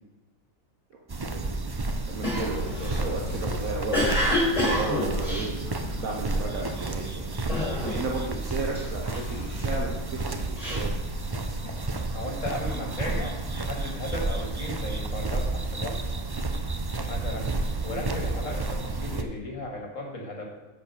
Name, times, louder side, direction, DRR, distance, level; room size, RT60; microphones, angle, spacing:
sound 1, 1.1-19.2, right 2 dB, 35° right, 0.3 m, -31 dB
voice 1, 1.2-7.3 7.8-11.0, right 3 dB, 70° right, -1 dB, 1.5 m, -35 dB
Cough, 2.2-6.3 6.8-7.1 7.5-8.2 8.5-9.6 10.2-11.7, left 1 dB, 25° left, 3.8 m, -28 dB
sound 2, 2.5-13.2, left 6 dB, 85° left, 1.2 m, -42 dB
voice 2, 12.1-16.0 17.1-17.5 17.8-20.5, left 1 dB, 65° left, 1 dB, 2.2 m, -35 dB
10.5 x 5.1 x 6.6 m, 1.1 s
omnidirectional pair, 1.5 m